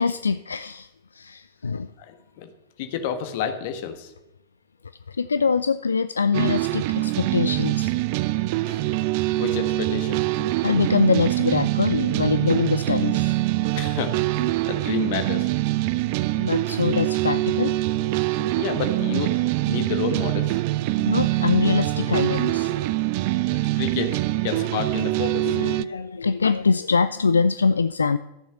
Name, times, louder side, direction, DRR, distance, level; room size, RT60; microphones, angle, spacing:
voice 1, 0.0-1.9 5.1-7.9 10.6-13.7 16.3-17.8 20.9-22.9 25.5-28.2, left 5 dB, 75° left, 13 dB, 0.3 m, -23 dB
voice 2, 2.0-2.5 2.8-4.1 8.6-8.8 9.3-10.2 13.7-15.5 18.5-19.3 19.6-20.6 23.5-25.6, left 7 dB, 50° left, 8 dB, 1.4 m, -30 dB
sound 1, 6.3-25.8, right 17 dB, 45° right, 0.4 m, -24 dB
13.5 x 7.0 x 5.7 m, 0.95 s
figure-of-eight pair, 90°, 0 cm